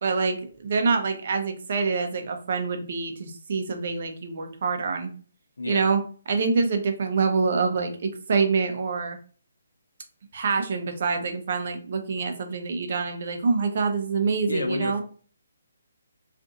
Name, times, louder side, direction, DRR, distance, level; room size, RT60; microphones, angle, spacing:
voice 1, 0.0-5.1 5.6-6.0 6.3-9.2 10.3-15.0, right 4 dB, 50° right, 6 dB, 0.6 m, -26 dB
voice 2, 14.5-15.0, left 3 dB, 85° left, 5 dB, 0.7 m, -30 dB
2.6 x 2.5 x 3.6 m, 0.43 s
hypercardioid pair, 160°, 0 cm